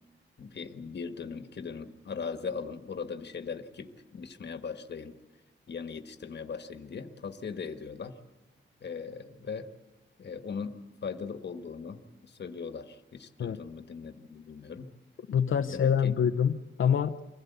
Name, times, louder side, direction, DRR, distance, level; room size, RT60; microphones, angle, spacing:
voice 1, 0.4-5.2 5.7-8.2 8.8-9.7 10.2-14.9 15.5-16.1, left 5 dB, 60° left, 8 dB, 1.5 m, -39 dB
voice 2, 15.3-17.2, left 8 dB, 85° left, 6 dB, 0.7 m, -26 dB
24.5 x 16.5 x 8.2 m, 1.2 s
wide cardioid pair, 150°, 20 cm